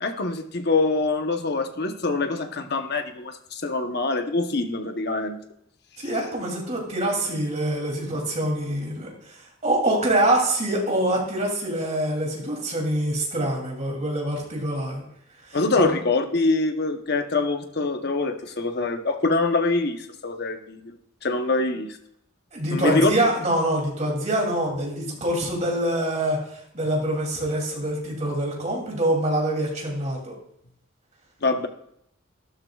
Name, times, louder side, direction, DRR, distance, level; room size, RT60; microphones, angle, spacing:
voice 1, 0.0-5.4 6.0-6.1 15.5-21.0 21.2-22.0 22.7-23.1 25.0-25.2 31.4-31.7, left 3 dB, 50° left, 6 dB, 0.9 m, -24 dB
voice 2, 6.0-9.4 9.6-15.0 15.8-15.9 22.5-26.4 26.7-30.3, right 1 dB, 35° right, -1 dB, 2.8 m, -25 dB
12.5 x 12.5 x 2.4 m, 0.73 s
head